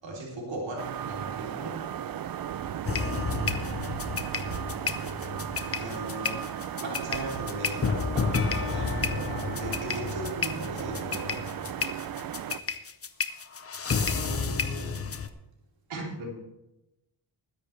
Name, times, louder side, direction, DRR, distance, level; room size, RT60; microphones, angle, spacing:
voice 1, 0.0-1.9 5.7-6.4 6.8-11.5, right 1 dB, 65° right, -3 dB, 3.5 m, -37 dB
sound 1, 0.8-12.6, right 9 dB, 50° right, 0.5 m, -36 dB
sound 2, 2.9-15.3, left 5 dB, 30° left, 0.7 m, -31 dB
voice 2, 3.0-3.6 6.3-6.4 13.8-15.0 15.9-16.3, right 2 dB, 85° right, -3 dB, 3.6 m, -38 dB
20.5 x 10.5 x 3.3 m, 0.93 s
wide cardioid pair, 165°, 47 cm